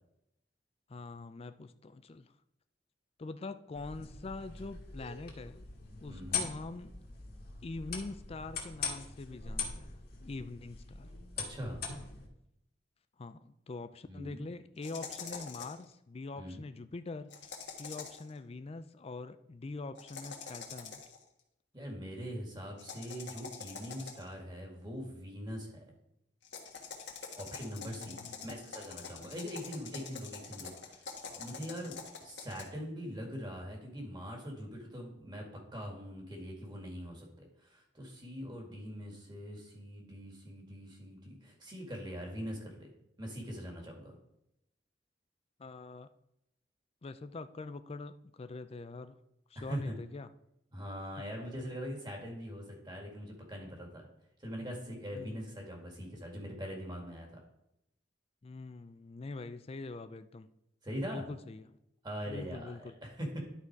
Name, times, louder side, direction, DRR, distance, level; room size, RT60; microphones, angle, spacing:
voice 1, 0.9-2.3 3.2-5.6 6.0-7.0 7.6-11.1 13.2-17.3 17.8-21.0 27.7-28.6 45.6-46.1 47.0-49.2 49.5-50.3 55.1-55.5 58.4-60.5 61.1-61.8 62.3-63.0, left 3 dB, 35° left, 11 dB, 0.4 m, -44 dB
sound 1, 3.7-12.3, left 5 dB, 60° left, 1.7 m, -42 dB
voice 2, 6.1-6.5 11.4-11.9 14.1-14.4 16.3-16.6 21.7-25.8 27.3-35.5 35.7-42.9 43.2-44.1 49.6-50.0 50.7-54.1 54.4-57.4 60.8-61.3 62.0-63.4, equal, 25° right, 0 dB, 2.1 m, -42 dB
sound 2, 14.8-15.9 17.3-18.3 20.0-21.2 22.8-24.4 26.4-32.6, left 5 dB, 80° left, 1.4 m, -45 dB
11.0 x 4.1 x 4.7 m, 0.82 s
head